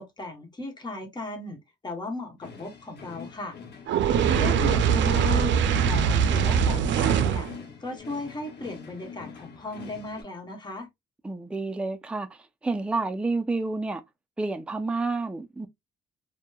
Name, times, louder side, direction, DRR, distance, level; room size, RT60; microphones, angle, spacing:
voice 1, 0.0-3.6 4.3-7.5 7.8-10.9, left 2 dB, 20° left, 1.1 m, -36 dB
sound 1, 2.4-10.2, left 6 dB, 60° left, 1.0 m, -44 dB
Fire, 3.9-7.5, right 7 dB, 70° right, 0.4 m, -22 dB
voice 2, 11.2-12.3 12.6-14.0 14.4-15.7, right 3 dB, 5° right, 0.4 m, -29 dB
2.8 x 2.2 x 2.3 m
cardioid pair, 90°, 20 cm